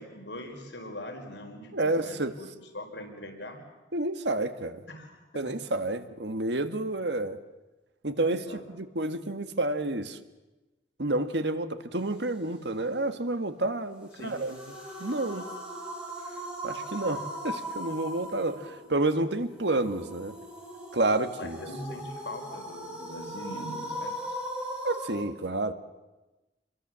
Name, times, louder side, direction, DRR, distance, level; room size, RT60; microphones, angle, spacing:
voice 1, 0.0-2.5 2.7-3.6 4.9-5.2 5.4-5.5 8.3-8.6 14.2-14.4 21.4-24.4, left 1 dB, 80° left, 3 dB, 4.7 m, -41 dB
voice 2, 1.7-2.3 3.9-4.8 5.4-7.4 8.0-10.2 11.0-14.6 15.0-15.5 16.6-20.3 20.9-21.6 24.8-25.7, right 2 dB, 70° right, 9 dB, 1.7 m, -29 dB
sound 1, 14.0-25.1, equal, 5° right, 6.9 m, -39 dB
27.5 x 22.5 x 7.6 m, 1.1 s
head